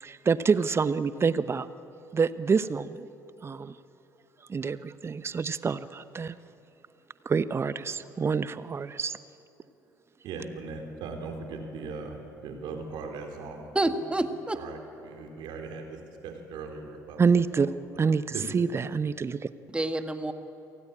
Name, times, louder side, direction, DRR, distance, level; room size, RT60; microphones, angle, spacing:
voice 1, 0.0-1.7 2.1-3.1 3.4-3.7 4.5-6.4 7.2-9.2 17.2-17.7 18.0-19.5, right 5 dB, 30° right, 14 dB, 1.0 m, -27 dB
voice 2, 10.2-16.0 16.2-17.2 17.6-17.7 18.3-18.4, right 4 dB, 60° right, 3 dB, 4.1 m, -39 dB
voice 3, 13.7-14.6 19.7-20.3, right 2 dB, 10° right, 7 dB, 2.0 m, -28 dB
28.5 x 18.0 x 8.8 m, 2.9 s
figure-of-eight pair, 55°, 9 cm